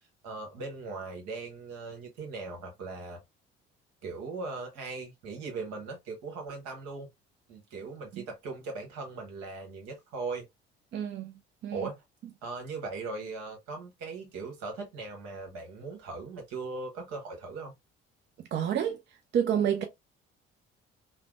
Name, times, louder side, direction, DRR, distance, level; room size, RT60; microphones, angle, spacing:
voice 1, 0.2-3.2 4.0-7.1 7.5-10.4 11.7-12.0 12.4-17.7, right 3 dB, 65° right, 1.2 m, -39 dB
voice 2, 10.9-11.3 11.6-11.9 18.5-19.0 19.3-19.8, right 9 dB, 40° right, 0.5 m, -28 dB
3.2 x 2.1 x 2.4 m
figure-of-eight pair, 50°, 30 cm